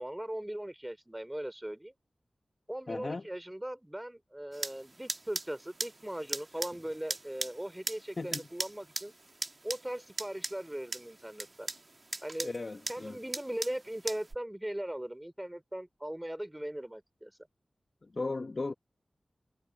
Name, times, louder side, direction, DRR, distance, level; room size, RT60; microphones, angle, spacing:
voice 1, 0.0-1.9 2.7-9.1 9.6-11.7 12.2-12.5 12.9-17.3, right 1 dB, 15° right, 3.2 m, -39 dB
voice 2, 2.9-3.3 8.2-8.5 12.4-13.2 18.0-18.7, left 3 dB, 55° left, 1.2 m, -36 dB
sound 1, 4.5-14.3, right 2 dB, 45° right, 1.5 m, -40 dB
cardioid pair, 50°, 0 cm